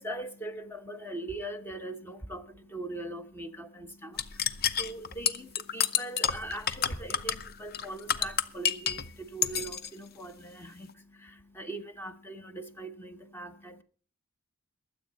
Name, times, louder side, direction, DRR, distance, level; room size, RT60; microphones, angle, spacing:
voice 1, 0.0-13.8, right 1 dB, 10° left, 0.8 m, -41 dB
sound 1, 4.2-9.1 9.4-9.9, left 8 dB, 45° left, 0.7 m, -29 dB
22.5 x 8.0 x 4.0 m
head